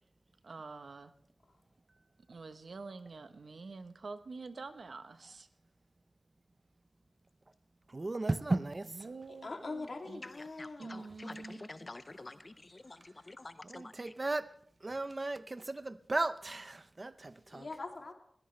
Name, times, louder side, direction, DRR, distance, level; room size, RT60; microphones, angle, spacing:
voice 1, 0.4-1.1 2.3-5.5 8.8-10.2 10.8-11.9, right 3 dB, 70° right, 0.9 m, -47 dB
voice 2, 7.9-8.9 13.6-14.5 14.8-17.7, right 2 dB, 35° right, 0.6 m, -35 dB
voice 3, 9.3-11.2 17.5-18.1, left 3 dB, 55° left, 2.7 m, -43 dB
voice 4, 10.6-13.9, left 2 dB, 35° left, 0.5 m, -48 dB
21.0 x 16.5 x 3.2 m
wide cardioid pair, 105°, 0 cm